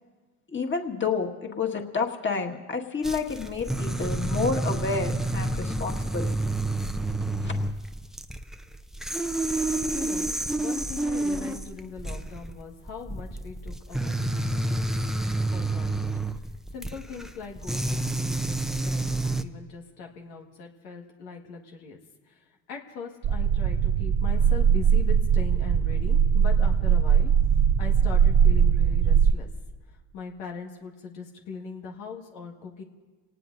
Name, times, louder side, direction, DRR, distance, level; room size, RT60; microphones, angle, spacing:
voice 1, 0.5-6.3 7.4-7.5, left 4 dB, 25° left, 2 dB, 1.8 m, -29 dB
sound 1, 3.0-19.4, right 2 dB, ahead, 0.6 m, -29 dB
voice 2, 9.9-14.9 15.3-16.1 16.4-22.0 22.3-27.3 27.8-29.5 29.9-32.8, left 5 dB, 85° left, 1 dB, 1.8 m, -40 dB
sound 2, 23.2-29.3, right 7 dB, 50° right, 0.7 m, -21 dB
27.5 x 18.5 x 2.6 m, 1.4 s
supercardioid pair, 70°, 44 cm